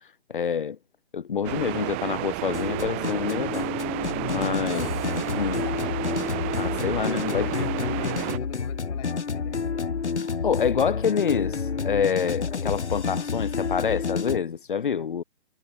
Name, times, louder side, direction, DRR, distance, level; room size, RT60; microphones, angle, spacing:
voice 1, 0.3-0.8 1.1-3.7 4.3-4.9 5.3-5.6 6.6-7.5 10.4-15.2, left 7 dB, 50° left, 2.9 m, -27 dB
sound 1, 1.4-8.4, right 25 dB, 10° right, 1.3 m, -31 dB
Mushroom Background Music, 2.5-14.4, left 5 dB, 90° left, 4.3 m, -29 dB
voice 2, 4.7-5.1 5.6-10.0, left 32 dB, 15° left, 3.8 m, -45 dB
hypercardioid pair, 175°, 33 cm